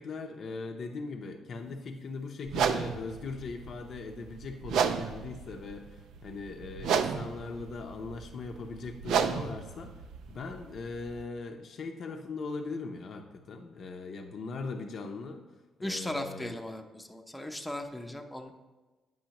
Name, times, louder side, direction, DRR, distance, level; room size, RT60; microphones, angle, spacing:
voice 1, 0.0-9.9 10.3-15.4 15.8-16.6, left 4 dB, 60° left, 4 dB, 0.6 m, -39 dB
sound 1, 2.5-11.2, right 7 dB, 85° right, 0.4 m, -33 dB
voice 2, 15.8-18.5, left 1 dB, 5° left, 4 dB, 0.7 m, -37 dB
9.0 x 5.5 x 2.9 m, 1.2 s
cardioid pair, 90°, 0 cm